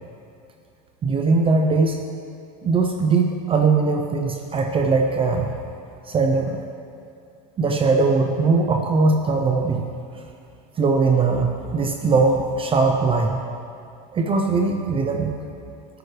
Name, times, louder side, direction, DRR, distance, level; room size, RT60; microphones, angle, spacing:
voice 1, 1.0-2.0 2.6-5.5 6.0-6.6 7.6-9.8 10.8-13.4 14.1-15.3, right 4 dB, 25° right, 3 dB, 0.6 m, -20 dB
12.5 x 9.8 x 3.2 m, 2.6 s
supercardioid pair, 120°, 21 cm